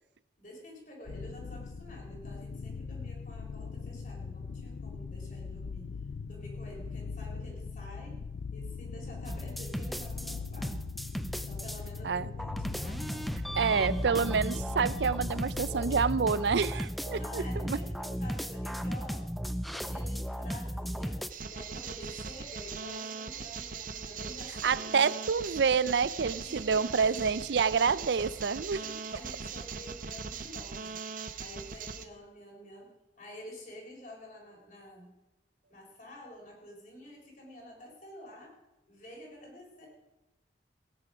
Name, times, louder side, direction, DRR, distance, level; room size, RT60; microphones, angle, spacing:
voice 1, 0.4-5.9 6.2-8.2 8.5-10.8 11.3-13.5 17.1-19.3 19.7-25.1 26.4-27.4 27.8-28.1 28.7-31.0 31.4-35.1 35.7-38.6 38.9-39.9, equal, 45° left, -1 dB, 4.2 m, -49 dB
sound 1, 1.1-16.1, left 5 dB, 75° left, 0.4 m, -41 dB
sound 2, 9.3-12.0 12.4-21.3, equal, ahead, 0.4 m, -35 dB
voice 2, 13.6-17.8 24.6-28.8, right 5 dB, 70° right, 18 dB, 0.5 m, -28 dB
sound 3, 21.3-32.0, right 5 dB, 45° right, 0.8 m, -40 dB
17.5 x 10.0 x 5.0 m, 0.98 s
head